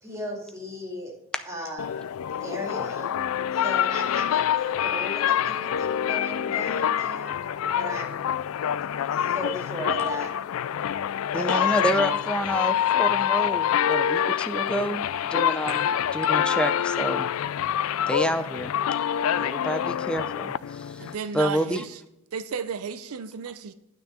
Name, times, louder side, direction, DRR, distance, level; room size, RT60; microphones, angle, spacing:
voice 1, 0.0-1.2 1.4-2.1 2.4-3.2 3.5-7.3 7.8-8.4 9.1-10.4 11.3-11.7 15.7-15.8, equal, 15° right, -2 dB, 2.3 m, -36 dB
sound 1, 1.8-21.2, left 9 dB, 70° left, 0.3 m, -26 dB
voice 2, 11.3-15.8 16.1-17.3 18.1-18.7 19.3-21.8, equal, 5° left, 9 dB, 0.5 m, -28 dB
voice 3, 21.0-22.0 22.3-23.7, right 6 dB, 75° right, 12 dB, 0.5 m, -33 dB
9.5 x 6.2 x 5.0 m, 0.87 s
head